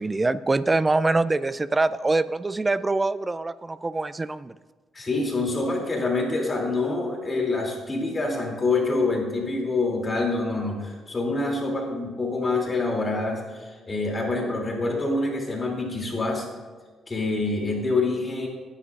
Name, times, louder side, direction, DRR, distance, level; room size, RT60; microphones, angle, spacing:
voice 1, 0.0-4.5, right 2 dB, 20° right, 16 dB, 0.4 m, -24 dB
voice 2, 4.9-16.5 17.1-18.5, left 3 dB, 30° left, -1 dB, 2.8 m, -26 dB
18.5 x 10.0 x 2.5 m, 1.4 s
cardioid pair, 90°, 0 cm